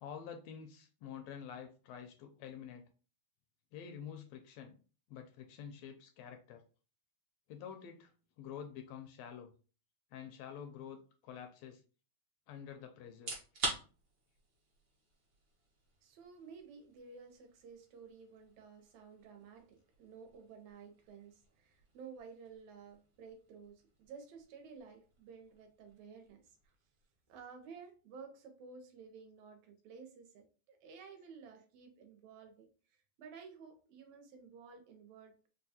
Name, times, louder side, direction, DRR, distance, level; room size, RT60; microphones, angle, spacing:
voice 1, 0.0-2.8 3.7-4.8 5.1-6.6 7.5-8.1 8.4-9.5 10.1-11.0 11.2-11.8 12.5-13.3, left 8 dB, 80° left, 5 dB, 1.5 m, -48 dB
sound 1, 13.1-27.9, right 3 dB, 60° right, 1.1 m, -49 dB
voice 2, 16.0-26.7 27.3-32.7 33.2-35.5, right 5 dB, 75° right, 5 dB, 2.0 m, -54 dB
4.7 x 2.2 x 2.7 m, 0.37 s
omnidirectional pair, 3.3 m